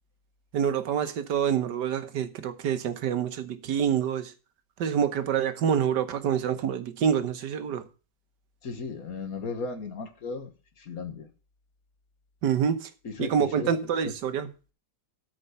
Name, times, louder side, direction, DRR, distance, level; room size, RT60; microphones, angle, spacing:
voice 1, 0.5-4.3 4.8-7.9 12.4-12.9 13.2-14.5, right 8 dB, 80° right, 1.6 m, -27 dB
voice 2, 8.6-10.5 10.8-11.3 13.0-14.2, left 4 dB, 55° left, 1.9 m, -36 dB
13.0 x 5.3 x 6.7 m
omnidirectional pair, 1.8 m